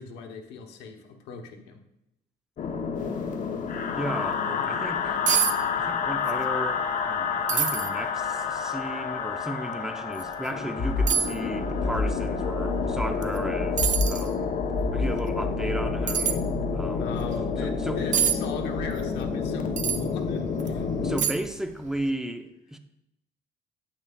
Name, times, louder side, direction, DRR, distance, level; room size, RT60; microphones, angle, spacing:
voice 1, 0.0-1.8 17.0-21.2, left 5 dB, 85° left, 1.1 m, -39 dB
sound 1, 2.6-21.2, left 5 dB, 50° left, 1.0 m, -28 dB
voice 2, 4.0-5.2 5.8-14.6 14.9-16.4 16.7-17.1 17.6-18.0 21.0-22.8, right 1 dB, 5° right, 0.7 m, -34 dB
sound 2, 4.9-5.0 5.3-5.6 5.8-6.4 6.7-6.8 7.5-7.9 8.6-8.7 10.1-10.3 11.1-11.3 13.2-13.4 13.8-14.3 16.1-16.4 18.1-18.4 19.8-20.0 20.6-20.7 21.2-21.6 21.9-22.0, right 9 dB, 45° right, 0.6 m, -25 dB
9.0 x 8.1 x 2.4 m
cardioid pair, 110°, 17 cm